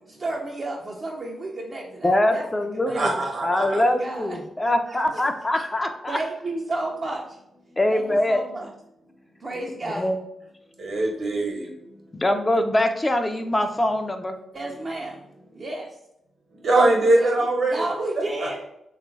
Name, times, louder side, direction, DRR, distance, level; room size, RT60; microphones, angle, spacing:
voice 1, 0.1-2.4 2.7-3.2 3.7-5.2 5.5-5.6 6.1-7.4 7.9-8.0 8.3-8.7 9.4-10.1 14.5-15.3 15.5-16.0 17.1-18.6, right 2 dB, 45° right, -2 dB, 0.5 m, -32 dB
voice 2, 2.0-3.1 3.4-6.2 7.8-8.4 9.5-10.2 12.1-14.4, left 1 dB, 25° left, 6 dB, 0.4 m, -23 dB
voice 3, 2.9-3.8 10.8-11.7 16.6-17.9 18.4-18.6, right 2 dB, 60° right, 1 dB, 1.0 m, -22 dB
3.2 x 2.4 x 3.1 m, 0.80 s
supercardioid pair, 45°, 0 cm